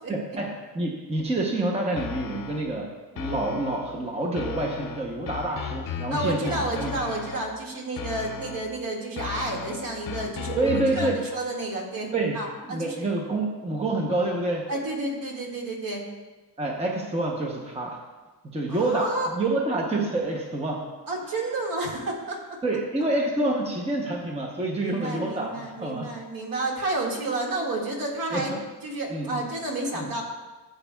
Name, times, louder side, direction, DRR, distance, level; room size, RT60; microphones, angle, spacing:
voice 1, 0.1-7.0 10.6-11.2 12.1-12.4 12.7-14.7 16.6-18.0 18.4-20.8 22.6-26.1 28.3-28.6 29.1-29.4 29.9-30.1, right 2 dB, 15° right, -1 dB, 0.8 m, -27 dB
sound 1, 2.0-2.8 3.2-4.0 4.4-7.6 8.0-8.8 9.2-11.4, left 8 dB, 50° left, 0.6 m, -36 dB
voice 2, 6.1-13.1 14.7-16.0 18.7-19.3 21.1-22.4 24.8-28.5 28.8-30.2, right 2 dB, 55° right, -1 dB, 2.0 m, -30 dB
15.5 x 8.0 x 2.3 m, 1.2 s
wide cardioid pair, 170°, 41 cm